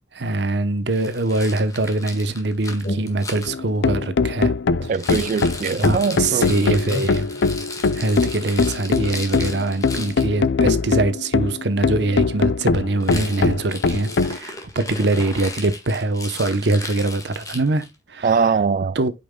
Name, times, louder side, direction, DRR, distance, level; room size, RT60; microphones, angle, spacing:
voice 1, 0.1-4.5 4.8-4.9 5.6-7.3 7.9-18.6 18.9-19.1, right 2 dB, 70° right, 0.9 m, -23 dB
Rattle, 0.9-3.5 4.9-10.3 13.0-18.0, left 3 dB, 20° left, 1.6 m, -36 dB
sound 1, 2.3-3.7 4.2-5.6 5.9-8.5, equal, 50° left, 1.8 m, -34 dB
sound 2, 3.5-14.4, left 4 dB, 80° left, 0.5 m, -22 dB
voice 2, 4.9-6.5 18.2-19.0, right 5 dB, 45° right, 0.3 m, -21 dB
8.5 x 5.5 x 2.2 m
head